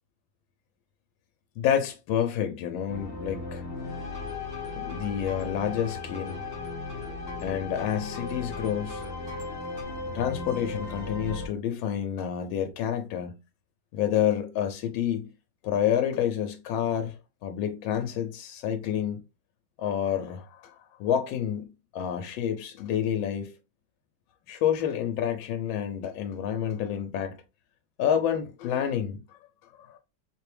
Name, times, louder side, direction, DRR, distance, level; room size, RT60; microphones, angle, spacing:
voice 1, 1.6-3.6 4.7-6.4 7.4-9.1 10.1-13.4 13.9-15.3 15.6-19.2 19.8-23.5 24.5-27.3 28.0-29.4 29.7-30.0, left 9 dB, 85° left, 1.4 m, -29 dB
sound 1, 2.9-11.5, left 3 dB, 55° left, 0.6 m, -36 dB
sound 2, 4.1-9.8, left 1 dB, 35° right, 1.5 m, -47 dB
3.4 x 3.2 x 3.2 m
omnidirectional pair, 2.1 m